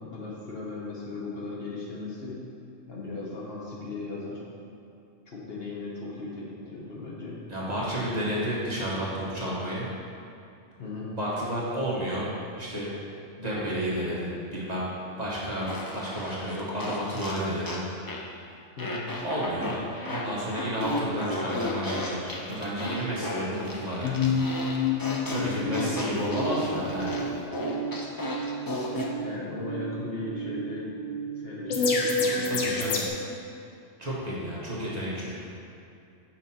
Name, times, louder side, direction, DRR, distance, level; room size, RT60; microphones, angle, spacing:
voice 1, 0.0-2.5 2.9-4.4 5.3-7.4 10.8-11.1 13.5-13.6 18.8-19.2 25.3-26.1 29.2-30.9 31.4-32.8, left 3 dB, 55° left, -5 dB, 1.3 m, -37 dB
voice 2, 7.5-9.9 11.1-12.3 12.6-13.0 13.4-14.9 15.2-17.8 19.2-19.8 20.1-24.3 25.3-27.2 32.4-33.0 34.0-35.5, equal, 35° right, -7 dB, 1.2 m, -31 dB
Fart, 15.7-18.3 18.8-29.1, left 1 dB, 35° left, 0.3 m, -35 dB
sound 1, 24.0-33.1, left 2 dB, 70° left, 1.0 m, -30 dB
5.8 x 5.4 x 4.2 m, 2.6 s
omnidirectional pair, 1.3 m